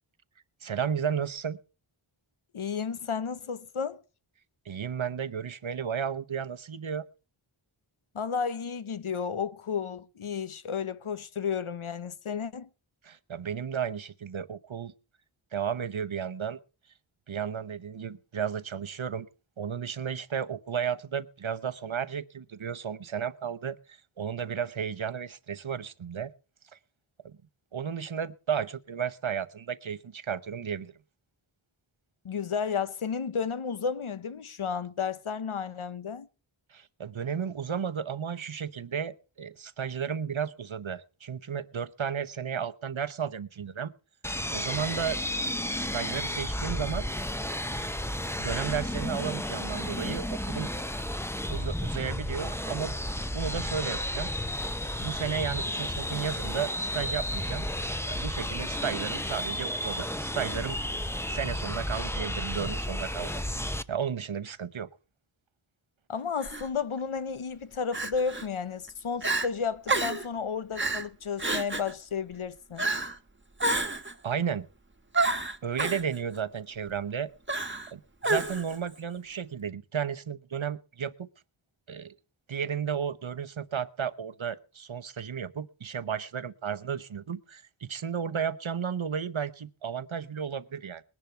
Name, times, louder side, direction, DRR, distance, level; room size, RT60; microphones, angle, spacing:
voice 1, 0.6-1.6 4.6-7.1 13.0-14.9 15.5-16.6 17.3-19.3 19.6-26.3 26.7-26.8 27.2-27.3 27.7-30.9 36.7-43.9 44.5-45.2 45.7-47.1 48.4-50.7 51.5-52.9 53.3-54.3 55.0-57.7 58.1-60.8 61.3-63.3 63.9-64.9 74.2-74.7 75.6-77.3 77.9-81.3 81.9-82.1 82.5-91.0, right 7 dB, 70° right, 1.0 m, -33 dB
voice 2, 2.5-4.0 8.1-12.7 32.2-36.3 66.1-72.8, left 6 dB, 80° left, 0.9 m, -32 dB
sound 1, 44.2-63.8, left 1 dB, 5° left, 0.7 m, -32 dB
Crying sobbing, 66.4-66.7 67.9-68.5 68.9-69.0 69.2-69.5 69.9-70.3 70.8-71.1 71.4-71.9 72.8-73.2 73.6-74.1 75.1-76.0 77.5-77.9 78.2-78.8, right 2 dB, 25° right, 1.3 m, -29 dB
20.5 x 10.5 x 4.5 m
wide cardioid pair, 45°, 50 cm